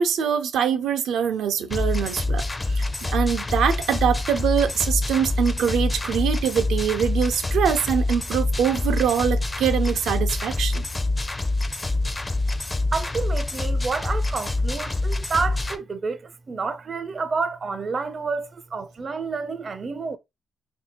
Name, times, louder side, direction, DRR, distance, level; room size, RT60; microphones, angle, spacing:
voice 1, 0.0-10.9, right 8 dB, 90° right, 0.5 m, -24 dB
sound 1, 1.7-15.8, left 2 dB, 20° left, 0.4 m, -26 dB
voice 2, 12.9-20.2, right 4 dB, 40° right, 0.4 m, -29 dB
3.1 x 2.6 x 4.2 m
cardioid pair, 115°, 0 cm